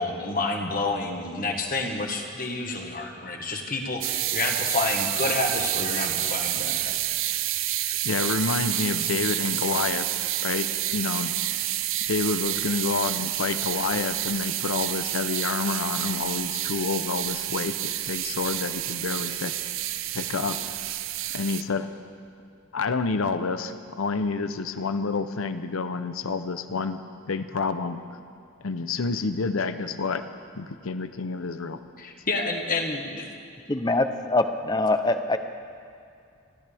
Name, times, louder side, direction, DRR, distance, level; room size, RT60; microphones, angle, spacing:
voice 1, 0.0-6.9 32.0-33.2, left 3 dB, 40° left, 2 dB, 1.6 m, -29 dB
sound 1, 4.0-21.6, right 14 dB, 70° right, 0.5 m, -29 dB
voice 2, 8.0-10.1 10.4-10.7 10.9-11.3 12.1-19.5 20.1-20.6 21.3-21.9 22.7-27.0 27.3-28.0 28.6-30.3 30.6-31.8, left 4 dB, 80° left, 10 dB, 0.7 m, -28 dB
voice 3, 33.7-35.4, left 2 dB, 20° left, 8 dB, 0.7 m, -24 dB
29.0 x 13.5 x 3.5 m, 2.4 s
head